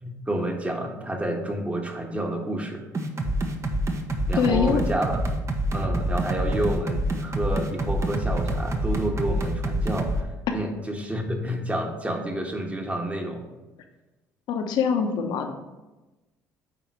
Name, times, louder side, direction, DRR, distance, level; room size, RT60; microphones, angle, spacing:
voice 1, 0.0-2.8 4.3-5.2 5.7-13.5, right 1 dB, 15° right, 3 dB, 1.4 m, -29 dB
sound 1, 2.9-10.2, right 1 dB, 40° right, 1.0 m, -26 dB
voice 2, 4.4-4.8 14.5-15.5, left 6 dB, 70° left, 5 dB, 1.0 m, -23 dB
9.1 x 3.9 x 4.7 m, 1.1 s
hypercardioid pair, 65°, 8 cm